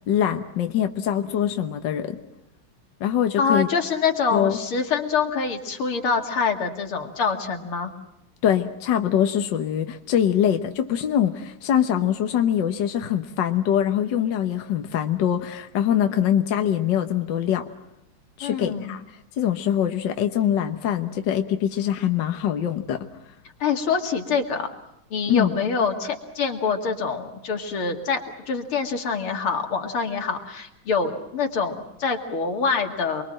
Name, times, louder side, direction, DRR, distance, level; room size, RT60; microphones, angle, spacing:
voice 1, 0.1-2.2 3.0-3.7 4.3-4.6 8.4-17.6 18.4-19.0 19.4-23.1 25.3-25.5, left 10 dB, 60° left, 6 dB, 1.7 m, -23 dB
voice 2, 3.4-7.9 18.4-18.9 23.6-24.7 25.1-33.2, left 5 dB, 85° left, 4 dB, 3.2 m, -25 dB
28.5 x 22.5 x 7.7 m, 0.85 s
omnidirectional pair, 2.3 m